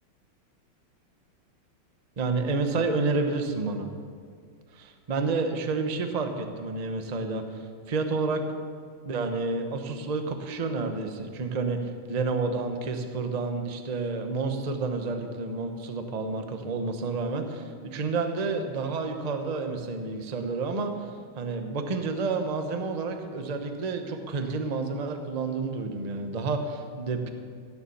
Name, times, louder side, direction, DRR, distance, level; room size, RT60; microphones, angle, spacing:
voice 1, 2.2-3.9 4.7-7.4 7.9-8.6 9.0-11.8 12.1-21.1 21.4-27.3, right 3 dB, 40° right, 5 dB, 0.5 m, -30 dB
16.5 x 7.2 x 7.1 m, 2.1 s
omnidirectional pair, 2.4 m